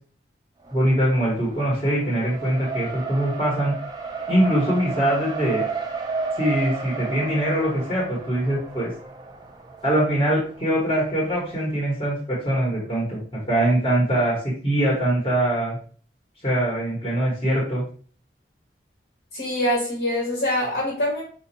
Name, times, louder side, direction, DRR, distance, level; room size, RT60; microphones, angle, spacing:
Race car auto racing, 0.6-11.6, right 4 dB, 20° right, 0.5 m, -34 dB
voice 1, 0.7-3.7 4.3-5.6 6.4-8.9 9.8-13.2 13.5-15.8 16.4-17.8, right 1 dB, 30° left, -5 dB, 1.3 m, -22 dB
voice 2, 19.3-21.2, left 1 dB, 70° left, -4 dB, 1.6 m, -24 dB
5.2 x 2.6 x 2.8 m, 0.43 s
head